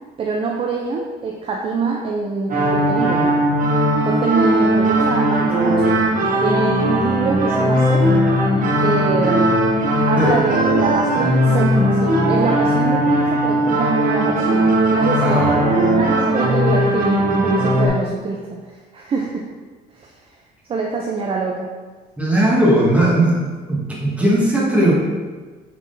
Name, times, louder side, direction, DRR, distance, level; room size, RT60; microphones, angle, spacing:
voice 1, 0.2-3.4 4.0-6.0 6.4-8.1 8.8-9.6 10.1-15.5 16.0-19.5 19.9-20.2 20.7-21.7, right 4 dB, 35° right, 0 dB, 0.4 m, -25 dB
sound 1, 2.5-17.9, right 1 dB, 50° right, 0.9 m, -18 dB
voice 2, 15.2-15.7 22.2-24.9, right 1 dB, 10° right, -5 dB, 1.3 m, -17 dB
5.5 x 3.6 x 2.6 m, 1.4 s
cardioid pair, 110°, 17 cm